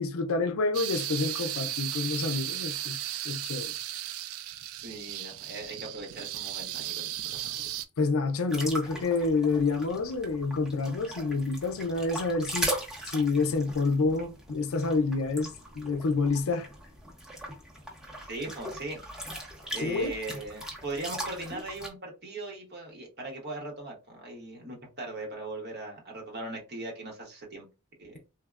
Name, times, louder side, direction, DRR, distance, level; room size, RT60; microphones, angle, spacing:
voice 1, 0.0-3.7 7.4-7.5 8.0-12.7 13.1-16.7 19.8-20.1, left 3 dB, 80° left, 0.5 m, -28 dB
sound 1, 0.7-7.9, right 13 dB, 75° right, 0.3 m, -35 dB
voice 2, 4.8-7.7 18.3-19.0 19.7-27.7 28.0-28.1, right 2 dB, 50° right, 1.0 m, -39 dB
sound 2, 8.5-21.9, right 1 dB, 5° right, 0.7 m, -39 dB
3.4 x 2.1 x 2.3 m
head